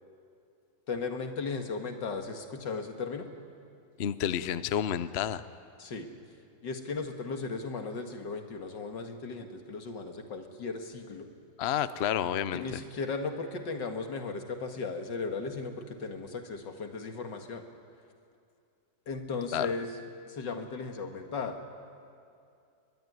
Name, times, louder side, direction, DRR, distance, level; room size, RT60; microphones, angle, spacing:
voice 1, 0.9-3.3 5.8-6.1 6.6-11.3 12.5-17.6 19.1-19.9 20.3-21.6, left 4 dB, 65° left, 5 dB, 2.5 m, -36 dB
voice 2, 4.0-5.4 11.6-12.8 19.5-19.7, left 9 dB, 80° left, 13 dB, 0.5 m, -30 dB
23.0 x 21.5 x 9.6 m, 2.5 s
omnidirectional pair, 2.1 m